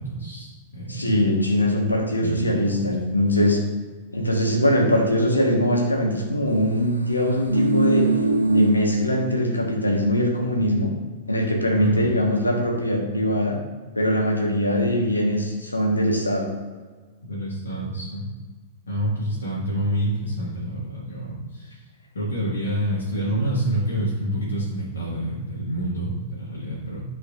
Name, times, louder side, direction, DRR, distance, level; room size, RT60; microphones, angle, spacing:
voice 1, 0.0-1.2 2.2-2.8 11.7-12.1 17.2-18.2 18.9-21.7 22.1-27.0, right 1 dB, 75° left, -7 dB, 1.7 m, -27 dB
voice 2, 0.9-3.6 4.1-8.1 8.4-10.9 11.3-13.6 13.9-16.5, left 1 dB, 90° left, 1 dB, 1.3 m, -22 dB
sound 1, 7.1-9.8 10.1-10.2, right 3 dB, 85° right, 0.6 m, -23 dB
8.0 x 5.2 x 2.5 m, 1.4 s
figure-of-eight pair, 100°, 0 cm